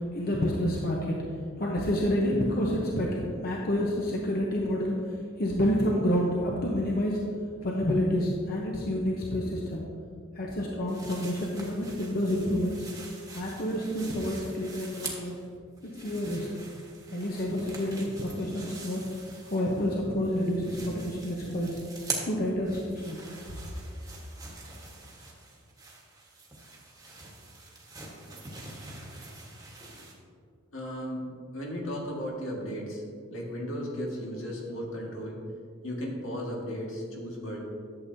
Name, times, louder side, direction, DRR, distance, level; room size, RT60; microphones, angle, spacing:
voice 1, 0.1-1.2 1.6-7.2 7.6-9.8 10.3-12.9 13.3-15.4 15.8-16.5 17.1-19.0 19.5-21.8 22.2-23.2, equal, 50° left, -2 dB, 0.9 m, -29 dB
sound 1, 10.9-15.5 15.8-20.0 20.2-30.1, right 3 dB, 15° right, 1.3 m, -44 dB
voice 2, 30.7-31.2 31.5-33.0 33.3-35.4 35.8-37.6, equal, 85° left, -2 dB, 1.8 m, -35 dB
11.5 x 7.5 x 2.7 m, 2.2 s
head